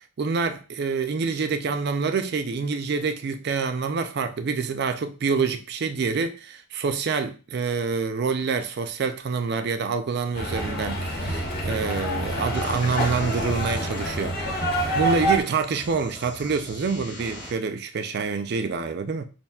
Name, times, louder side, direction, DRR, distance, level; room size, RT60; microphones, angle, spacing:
voice 1, 0.2-19.3, right 5 dB, 50° right, 0.4 m, -27 dB
sound 1, 10.4-15.4, right 1 dB, 45° left, 0.9 m, -27 dB
sound 2, 12.5-17.5, left 1 dB, 15° left, 0.9 m, -43 dB
5.4 x 2.5 x 2.3 m
head